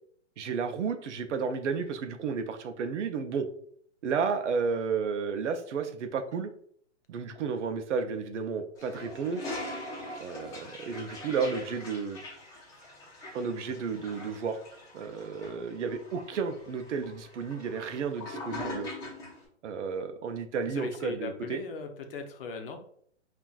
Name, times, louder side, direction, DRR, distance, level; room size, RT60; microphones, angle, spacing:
voice 1, 0.4-3.5 4.0-6.5 7.1-9.4 10.2-12.2 13.3-14.6 14.9-18.9 19.6-21.6, right 5 dB, 75° right, 7 dB, 0.6 m, -32 dB
Toilet flush, 8.8-19.4, left 1 dB, 10° left, 0.8 m, -42 dB
voice 2, 20.6-22.8, left 4 dB, 50° left, 5 dB, 0.7 m, -38 dB
5.4 x 2.5 x 2.3 m, 0.62 s
hypercardioid pair, 140°, 36 cm